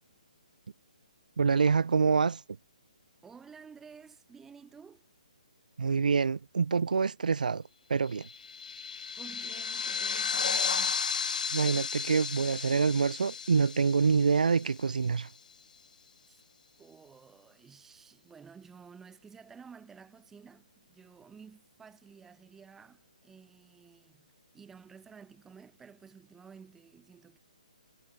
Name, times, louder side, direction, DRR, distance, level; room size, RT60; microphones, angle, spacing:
voice 1, 1.4-2.4 5.8-7.6 7.9-8.3 11.5-15.3, right 5 dB, 80° right, 0.9 m, -26 dB
voice 2, 3.2-5.1 9.2-11.0 16.3-16.4 16.8-24.3 24.5-27.4, right 6 dB, 10° right, 3.5 m, -53 dB
sound 1, 8.2-15.1, left 5 dB, 70° left, 1.1 m, -34 dB
hypercardioid pair, 155°, 4 cm